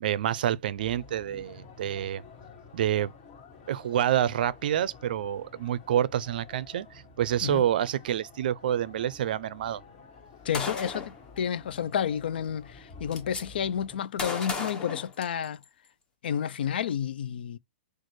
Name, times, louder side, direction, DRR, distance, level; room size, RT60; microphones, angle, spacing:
voice 1, 0.0-2.2 2.7-3.1 3.7-9.8, right 10 dB, 55° right, 0.5 m, -28 dB
sound 1, 0.8-14.0, left 4 dB, 35° left, 2.1 m, -51 dB
voice 2, 10.5-12.7 13.0-15.6 16.2-17.6, left 8 dB, 65° left, 0.4 m, -30 dB
Gunshot gunfire, 10.5-11.2 12.3-12.4 12.7-13.4 14.2-15.7, left 4 dB, 15° left, 0.9 m, -35 dB
6.4 x 2.4 x 3.1 m
hypercardioid pair, 155°, 6 cm